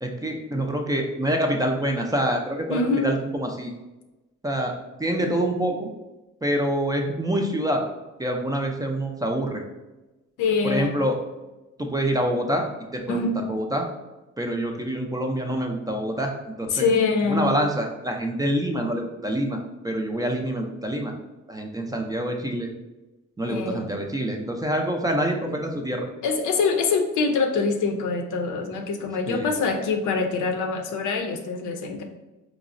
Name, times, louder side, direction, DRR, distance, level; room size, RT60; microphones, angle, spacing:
voice 1, 0.0-3.7 4.4-4.7 5.0-5.9 6.4-7.8 8.2-9.6 10.6-11.2 11.8-12.6 12.9-13.9 14.4-16.9 17.3-21.1 21.5-22.7 23.4-26.1 29.3-29.5, right 1 dB, 15° right, 2 dB, 0.4 m, -26 dB
voice 2, 2.7-3.1 10.4-10.9 13.1-13.3 16.7-17.5 23.5-23.9 26.2-32.0, left 4 dB, 80° left, 4 dB, 0.6 m, -24 dB
4.6 x 2.0 x 2.5 m, 1.0 s
cardioid pair, 90°, 30 cm